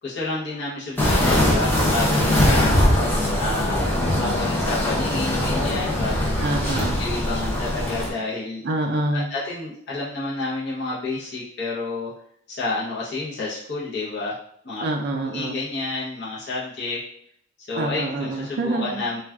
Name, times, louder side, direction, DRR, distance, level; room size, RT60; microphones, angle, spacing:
voice 1, 0.0-2.9 3.4-6.5 7.0-8.6 9.1-12.1 12.5-14.3 14.6-14.9 15.2-17.0 17.6-19.2, left 3 dB, 55° left, -7 dB, 0.7 m, -30 dB
sound 1, 1.0-8.1, left 1 dB, 10° left, 0.6 m, -21 dB
voice 2, 6.4-7.0 8.6-9.3 14.8-15.6 17.7-19.0, right 2 dB, 55° right, 2 dB, 0.3 m, -26 dB
2.3 x 2.2 x 3.4 m, 0.65 s
head